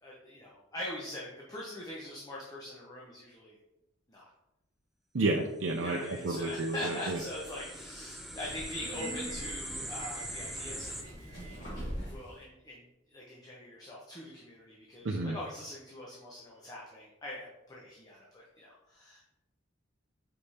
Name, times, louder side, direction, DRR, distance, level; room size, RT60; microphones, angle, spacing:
voice 1, 0.0-3.6 4.1-4.3 5.8-11.7 12.1-19.3, left 1 dB, 20° left, -4 dB, 0.9 m, -43 dB
voice 2, 5.1-7.2 15.0-15.4, right 2 dB, 80° right, 0 dB, 0.6 m, -31 dB
sound 1, 5.7-11.0, equal, ahead, 0.6 m, -43 dB
Subway metro underground, 8.1-12.4, right 1 dB, 55° left, 2.4 m, -42 dB
5.2 x 4.7 x 4.3 m, 0.93 s
head